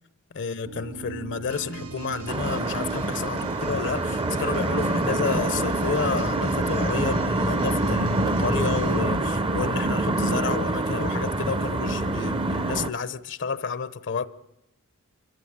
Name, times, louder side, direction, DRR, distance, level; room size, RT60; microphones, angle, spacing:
voice 1, 0.3-14.3, left 5 dB, 55° left, 0.7 m, -30 dB
sound 1, 0.6-12.9, right 4 dB, 70° right, 0.9 m, -38 dB
sound 2, 1.5-9.1, right 4 dB, 85° right, 2.3 m, -45 dB
sound 3, 2.3-12.9, right 2 dB, 25° right, 0.7 m, -26 dB
25.0 x 14.5 x 8.8 m
head